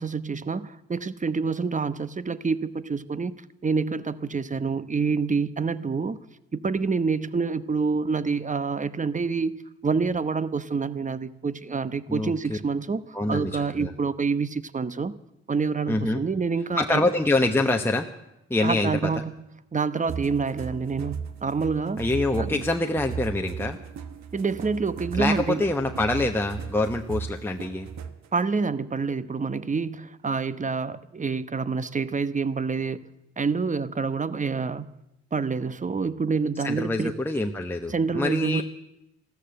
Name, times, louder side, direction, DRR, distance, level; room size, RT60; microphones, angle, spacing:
voice 1, 0.0-3.3 3.6-6.2 6.5-9.5 9.8-15.1 15.5-17.0 18.6-19.3 19.7-22.0 22.4-22.6 24.3-25.6 28.3-33.0 33.4-34.9 35.3-37.1 37.9-38.6, right 4 dB, 25° right, 15 dB, 0.9 m, -27 dB
voice 2, 12.1-12.6 13.1-13.9 15.9-16.2 16.8-18.1 18.5-19.2 22.0-23.8 25.2-27.9 36.6-38.6, left 2 dB, 5° left, 3 dB, 1.1 m, -25 dB
sound 1, 20.1-28.3, right 7 dB, 65° right, 1.2 m, -36 dB
14.0 x 13.5 x 7.7 m, 0.89 s
supercardioid pair, 55°, 30 cm